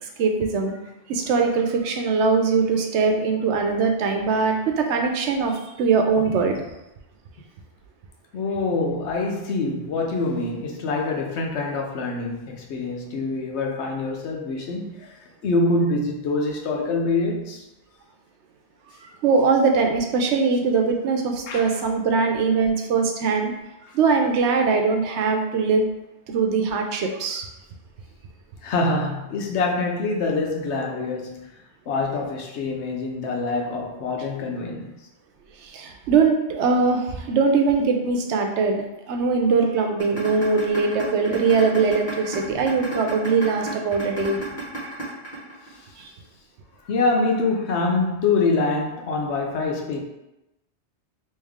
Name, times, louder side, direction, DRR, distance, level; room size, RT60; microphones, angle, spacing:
voice 1, 0.0-0.8 1.1-6.6 19.2-23.5 23.9-25.9 26.3-27.5 35.6-38.8 39.1-44.4 46.0-46.1, right 4 dB, 90° right, 3 dB, 0.9 m, -21 dB
voice 2, 8.3-17.6 21.5-21.8 28.6-31.5 31.9-35.0 45.7-45.9 46.8-50.0, left 3 dB, 80° left, 1 dB, 1.0 m, -25 dB
sound 1, 40.0-46.0, right 2 dB, 40° left, 1.2 m, -33 dB
3.3 x 3.1 x 3.5 m, 0.94 s
omnidirectional pair, 1.1 m